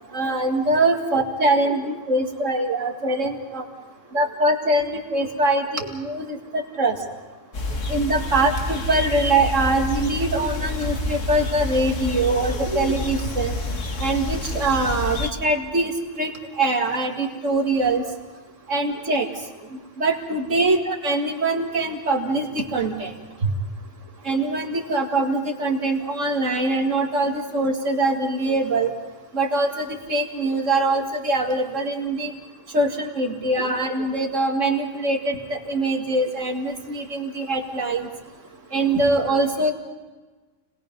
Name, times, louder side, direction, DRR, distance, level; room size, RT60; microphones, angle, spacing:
voice 1, 0.1-3.6 4.1-6.9 7.9-13.5 14.0-15.9 16.2-16.3 16.6-18.0 18.7-19.3 20.0-23.1 24.3-28.9 29.3-32.3 32.7-38.1 38.7-39.7, right 2 dB, 80° right, 3 dB, 2.6 m, -23 dB
sound 1, 7.5-15.3, left 2 dB, 75° left, 2.0 m, -28 dB
30.0 x 20.5 x 5.4 m, 1.3 s
omnidirectional pair, 1.3 m